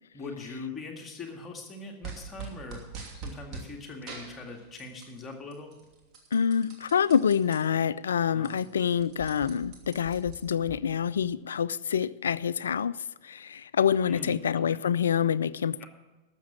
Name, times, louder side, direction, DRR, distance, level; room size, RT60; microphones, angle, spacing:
voice 1, 0.1-2.8 3.2-5.7 8.3-8.5 14.1-14.4 14.7-14.8 15.8-15.9, left 3 dB, 20° left, 2.0 m, -41 dB
sound 1, 2.0-3.7 4.1-5.2 5.5-7.6 8.0-8.1 8.3-10.7, right 5 dB, 35° right, 2.8 m, -43 dB
voice 2, 6.3-12.9 13.2-15.9, left 8 dB, 65° left, 0.4 m, -26 dB
13.0 x 7.3 x 8.7 m
figure-of-eight pair, 90°, 0 cm